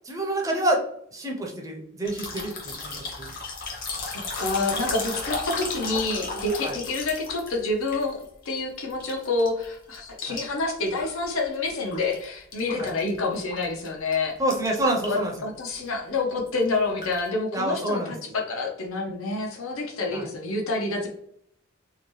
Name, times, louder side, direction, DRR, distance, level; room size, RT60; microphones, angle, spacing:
voice 1, 0.0-0.8 1.1-3.3 6.6-6.7 10.3-10.4 12.8-12.9 14.4-15.3 17.5-18.1 20.1-20.3, right 1 dB, 15° right, 0 dB, 0.5 m, -27 dB
sound 1, 2.0-8.6 8.9-9.7 9.9-12.2 12.5-13.9 14.1-14.2 14.5-15.4 15.7-15.9 16.3-17.3, left 3 dB, 45° left, 0.8 m, -35 dB
voice 2, 4.1-14.4 15.1-21.1, left 3 dB, 90° left, 1 dB, 0.6 m, -28 dB
2.8 x 2.2 x 3.0 m, 0.69 s
head